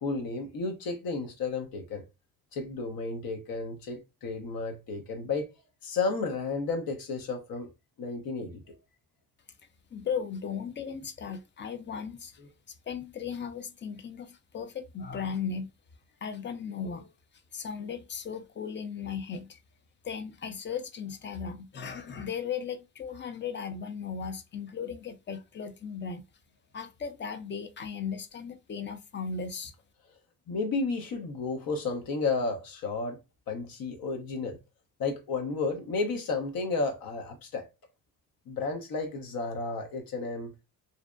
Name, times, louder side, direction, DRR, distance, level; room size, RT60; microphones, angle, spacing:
voice 1, 0.0-2.0 2.5-5.5 5.8-7.7 8.0-8.7 30.5-33.2 33.5-34.6 35.0-37.7 38.5-40.5, left 3 dB, 65° left, 0.7 m, -32 dB
voice 2, 9.9-12.4 12.7-15.7 16.2-17.1 17.5-19.6 20.0-26.2 26.7-29.7, left 6 dB, 30° left, 0.5 m, -36 dB
2.6 x 2.0 x 2.3 m
supercardioid pair, 60°, 37 cm